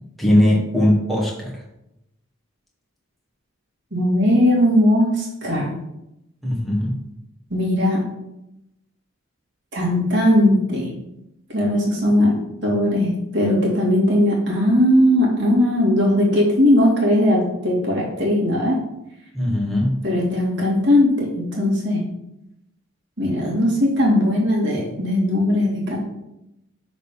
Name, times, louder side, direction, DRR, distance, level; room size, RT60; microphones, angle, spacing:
voice 1, 0.2-1.6 6.4-7.0 19.3-20.0, left 1 dB, ahead, -4 dB, 1.3 m, -19 dB
voice 2, 3.9-5.7 7.5-8.0 9.7-10.9 11.5-18.8 20.0-22.0 23.2-26.0, left 1 dB, 55° right, -4 dB, 2.3 m, -18 dB
6.4 x 4.1 x 5.3 m, 0.86 s
head